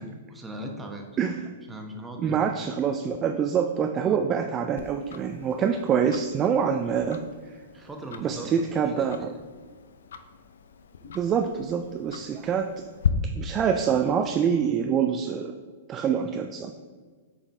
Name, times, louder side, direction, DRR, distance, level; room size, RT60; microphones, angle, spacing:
voice 1, 0.0-1.1 1.7-2.5 4.0-4.2 7.7-9.3, right 1 dB, 10° right, 2 dB, 0.9 m, -39 dB
voice 2, 1.2-1.5 2.2-7.2 8.2-9.3 11.1-12.7 13.4-15.5 15.9-16.7, right 7 dB, 30° right, 5 dB, 0.3 m, -25 dB
Tick-tock, 4.8-13.1, left 8 dB, 75° left, 0.4 m, -37 dB
7.1 x 3.9 x 3.4 m, 1.5 s
hypercardioid pair, 115°, 0 cm